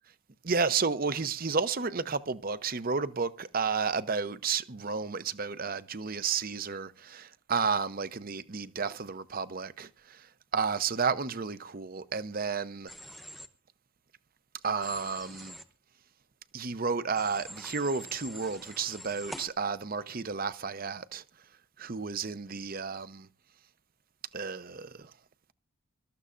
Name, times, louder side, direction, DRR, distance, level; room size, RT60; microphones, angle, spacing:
voice 1, 0.4-10.2 10.5-12.9 14.6-15.6 16.5-21.2 21.8-23.3 24.3-25.1, right 5 dB, 40° right, 0.7 m, -32 dB
Human voice / Train, 12.9-13.5 14.8-15.6 17.2-19.5, equal, ahead, 0.9 m, -45 dB
24.5 x 13.5 x 2.5 m
head